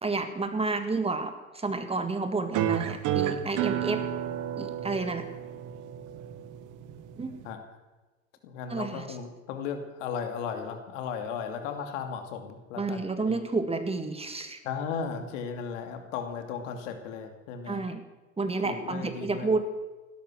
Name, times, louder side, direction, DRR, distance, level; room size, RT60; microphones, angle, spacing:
voice 1, 0.0-4.0 4.6-5.3 7.2-7.3 8.7-9.0 12.8-14.6 17.7-18.0 18.4-19.6, right 3 dB, 15° right, 8 dB, 1.8 m, -30 dB
sound 1, 2.5-7.5, right 11 dB, 50° right, 1.6 m, -31 dB
voice 2, 8.4-13.4 14.6-17.8 18.6-19.5, left 6 dB, 70° left, 6 dB, 2.6 m, -36 dB
17.0 x 12.0 x 6.4 m, 1.2 s
hypercardioid pair, 85°, 39 cm